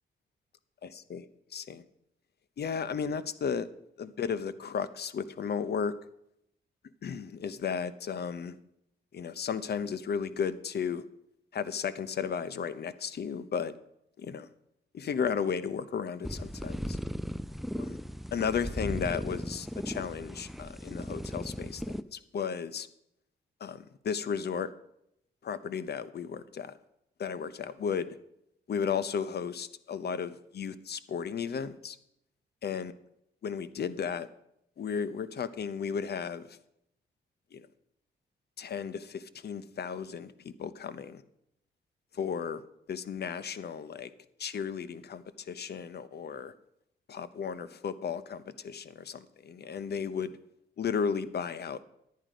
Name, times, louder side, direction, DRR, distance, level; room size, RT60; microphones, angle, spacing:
voice 1, 0.8-1.3 1.5-1.8 2.6-3.7 4.0-5.9 7.0-8.6 9.1-11.0 11.5-13.7 14.2-14.5 14.9-17.0 17.8-18.0 18.3-22.9 23.6-24.7 25.4-26.7 27.2-28.1 28.7-32.0 32.6-32.9 33.4-34.3 34.8-36.6 37.5-37.7 38.6-41.2 42.1-42.6 42.9-44.1 44.4-46.5 47.1-50.3 50.8-51.8, left 6 dB, 60° left, 15 dB, 0.8 m, -34 dB
sound 1, 16.2-22.0, equal, ahead, 0.5 m, -37 dB
11.0 x 9.4 x 5.0 m, 0.79 s
cardioid pair, 70°, 19 cm